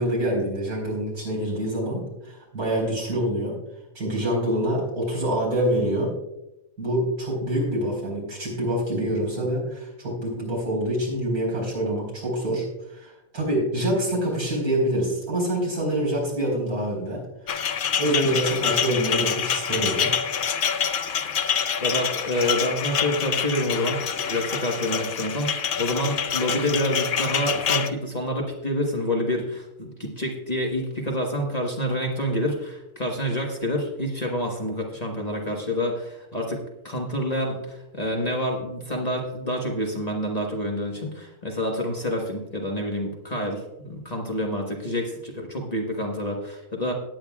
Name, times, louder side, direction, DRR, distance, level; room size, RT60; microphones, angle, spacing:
voice 1, 0.0-3.6 3.9-6.1 6.8-17.2 17.5-17.6 18.0-20.1, right 1 dB, 75° right, -3 dB, 5.0 m, -26 dB
sound 1, 17.5-27.9, left 7 dB, 60° left, 0.5 m, -26 dB
voice 2, 21.8-46.9, equal, 30° left, 0 dB, 1.3 m, -28 dB
18.0 x 9.0 x 2.3 m, 0.90 s
omnidirectional pair, 1.6 m